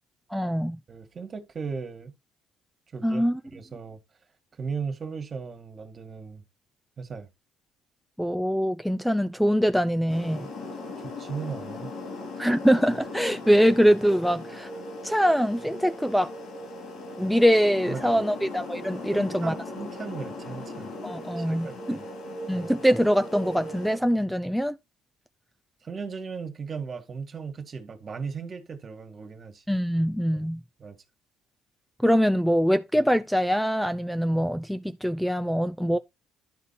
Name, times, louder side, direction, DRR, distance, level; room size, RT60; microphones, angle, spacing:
voice 1, 0.3-0.8 3.0-3.3 8.2-10.5 12.4-14.7 15.0-16.3 17.2-19.5 21.0-22.0 22.5-24.7 29.7-30.6 32.0-36.0, equal, ahead, 0.5 m, -23 dB
voice 2, 0.9-2.1 2.9-4.0 4.6-6.4 7.0-7.3 11.0-11.9 12.4-12.5 17.9-18.2 19.1-20.9 21.4-22.1 22.5-22.7 25.8-29.6 30.3-30.5 30.8-31.0, right 5 dB, 45° right, 1.7 m, -37 dB
sound 1, 10.1-24.0, left 2 dB, 65° left, 3.3 m, -38 dB
11.5 x 4.1 x 4.2 m
hypercardioid pair, 65°, 0 cm